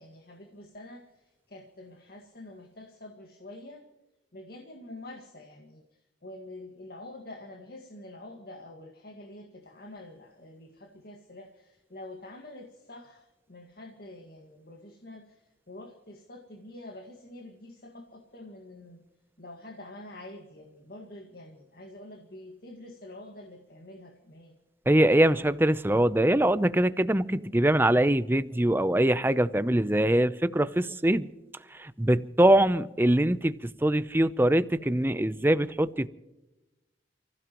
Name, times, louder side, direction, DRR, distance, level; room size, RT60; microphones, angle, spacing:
voice 1, 0.0-3.9 4.3-19.0 19.4-24.5 36.0-36.1, left 1 dB, 55° left, 3 dB, 1.8 m, -47 dB
voice 2, 24.9-31.3 31.7-36.1, right 1 dB, 10° right, 13 dB, 0.6 m, -23 dB
30.0 x 16.0 x 3.1 m, 1.0 s
head